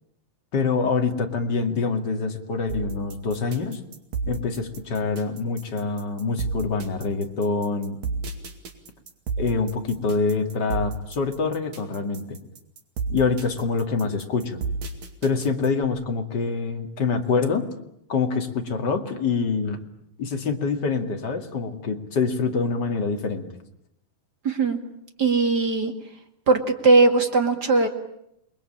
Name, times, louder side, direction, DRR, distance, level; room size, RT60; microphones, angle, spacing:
voice 1, 0.5-3.8 4.3-8.0 9.4-12.4 13.1-14.6 15.2-17.7 18.1-19.8 20.2-23.5, left 4 dB, 35° left, 5 dB, 2.4 m, -25 dB
sound 1, 2.7-15.8, right 4 dB, 55° right, 3.5 m, -32 dB
voice 2, 24.4-24.8 25.2-25.9 26.5-27.9, right 3 dB, 35° right, 6 dB, 2.0 m, -19 dB
28.5 x 21.5 x 8.7 m, 0.78 s
omnidirectional pair, 3.9 m